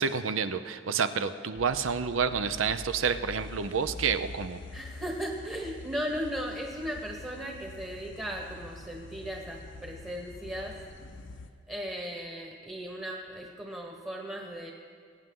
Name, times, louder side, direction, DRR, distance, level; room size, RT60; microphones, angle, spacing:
voice 1, 0.0-4.6, right 6 dB, 85° right, 11 dB, 0.6 m, -29 dB
sound 1, 1.5-11.5, left 2 dB, 65° left, 0.7 m, -46 dB
voice 2, 4.7-10.8 11.7-14.7, equal, 15° right, 0 dB, 1.1 m, -37 dB
21.5 x 9.2 x 3.8 m, 2.1 s
head